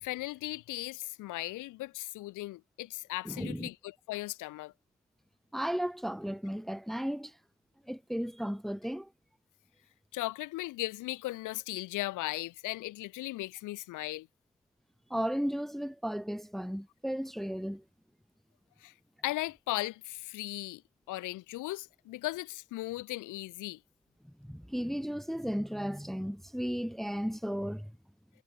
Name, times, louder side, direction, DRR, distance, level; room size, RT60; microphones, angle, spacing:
voice 1, 0.0-4.7 10.1-14.3 18.8-18.9 19.2-20.8 21.1-23.8, left 18 dB, 90° left, 0.9 m, -37 dB
voice 2, 3.2-3.7 5.5-7.3 7.9-9.1 15.1-17.8 24.5-27.9, equal, ahead, 0.9 m, -34 dB
cardioid pair, 90°, 30 cm